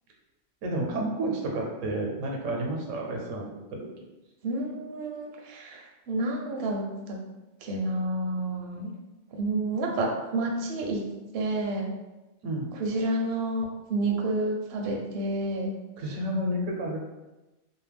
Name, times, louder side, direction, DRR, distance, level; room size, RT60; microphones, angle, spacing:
voice 1, 0.6-3.9 12.4-12.7 16.0-17.0, right 1 dB, 85° right, 0 dB, 1.0 m, -30 dB
voice 2, 4.4-7.2 7.6-8.9 9.3-11.0 11.3-11.9 12.7-15.7, right 2 dB, 65° right, 0 dB, 0.7 m, -29 dB
2.6 x 2.0 x 3.3 m, 1.1 s
omnidirectional pair, 1.3 m